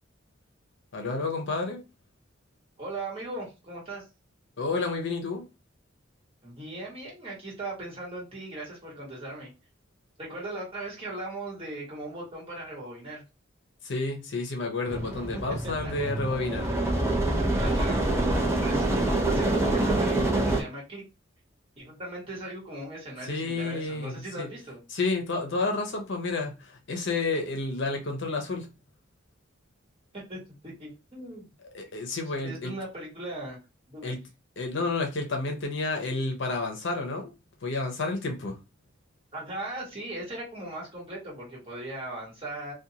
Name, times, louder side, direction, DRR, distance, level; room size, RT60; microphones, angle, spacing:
voice 1, 0.9-1.8 4.6-5.4 13.8-16.7 23.2-24.5 24.9-28.7 31.7-32.7 34.0-34.2 34.6-37.3 37.6-38.6, left 3 dB, 65° left, 0.6 m, -30 dB
voice 2, 2.8-4.0 6.4-9.5 10.2-13.2 15.8-15.9 17.6-21.0 21.8-24.8 30.3-31.5 32.4-33.6 33.9-34.2 39.3-42.7, right 1 dB, 30° right, 1.4 m, -38 dB
sound 1, 14.9-20.6, right 2 dB, 15° right, 0.6 m, -26 dB
2.5 x 2.3 x 2.8 m
head